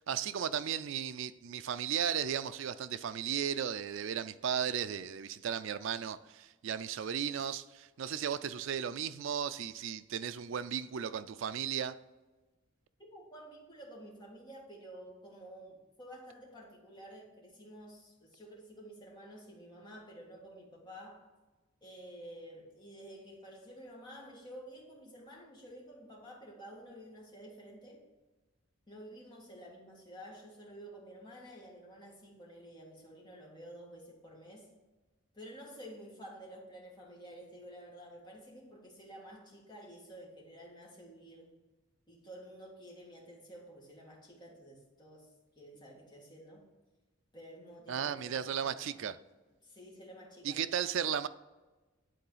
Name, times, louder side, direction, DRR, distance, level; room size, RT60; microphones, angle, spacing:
voice 1, 0.0-11.9 47.9-49.2 50.4-51.3, right 8 dB, 65° right, 0.4 m, -35 dB
voice 2, 13.0-21.3 21.8-28.0 28.9-34.7 35.3-41.5 42.1-45.3 45.5-46.6 47.3-49.0 49.6-50.7, equal, 20° left, 1.8 m, -51 dB
9.2 x 4.0 x 5.5 m
head